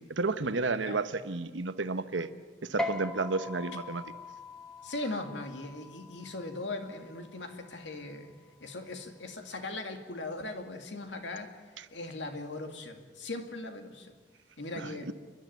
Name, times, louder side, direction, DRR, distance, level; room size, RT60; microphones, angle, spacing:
voice 1, 0.0-2.3 2.6-4.0 14.8-15.1, right 3 dB, 90° right, 11 dB, 1.1 m, -32 dB
sound 1, 2.8-9.6, left 1 dB, 5° left, 1.5 m, -42 dB
voice 2, 4.8-8.3 8.6-11.6 11.9-14.1 14.6-15.1, left 2 dB, 75° left, 5 dB, 2.4 m, -39 dB
29.0 x 11.5 x 9.4 m, 1.4 s
head